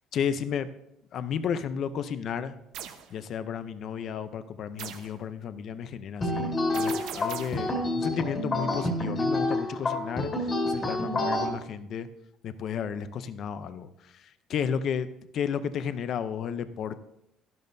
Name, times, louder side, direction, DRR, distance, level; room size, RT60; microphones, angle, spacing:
voice 1, 0.1-0.7 1.1-2.5 3.1-12.1 12.4-13.9 14.1-14.2 14.5-15.1 15.4-17.0, left 7 dB, 40° left, 12 dB, 0.5 m, -32 dB
sound 1, 2.7-3.1 4.8-5.2 6.7-7.7, right 9 dB, 70° right, 1.0 m, -39 dB
sound 2, 6.2-11.5, left 1 dB, 20° left, 1.9 m, -28 dB
12.5 x 12.0 x 2.7 m, 0.81 s
cardioid pair, 180°, 0 cm